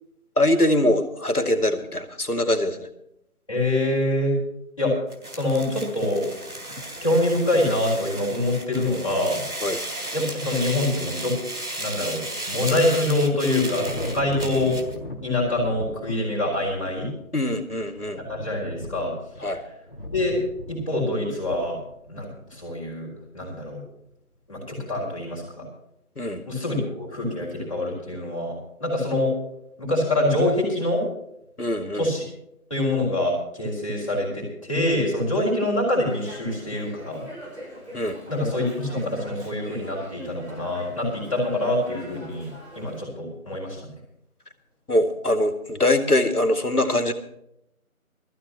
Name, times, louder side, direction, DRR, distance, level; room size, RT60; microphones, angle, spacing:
voice 1, 0.4-2.9 9.6-9.8 17.3-18.2 19.4-19.6 26.2-26.4 31.6-32.1 37.9-38.2 44.9-47.1, left 1 dB, 90° left, 7 dB, 2.2 m, -23 dB
voice 2, 3.5-4.3 4.8-5.0 5.3-6.2 7.0-9.4 10.1-11.4 11.8-14.8 15.2-17.1 18.3-19.1 20.1-20.4 20.7-21.8 22.1-23.8 24.5-25.7 26.4-29.3 29.8-31.0 31.9-32.2 32.7-37.2 38.3-43.9, left 1 dB, 20° left, -5 dB, 5.0 m, -25 dB
sound 1, 5.1-15.0, right 1 dB, 80° right, 3.4 m, -34 dB
Thunder, 13.3-22.6, left 1 dB, 40° left, 2.1 m, -38 dB
Dog, 36.1-43.0, equal, 50° right, 6.7 m, -43 dB
21.5 x 14.5 x 2.9 m, 0.77 s
figure-of-eight pair, 175°, 44 cm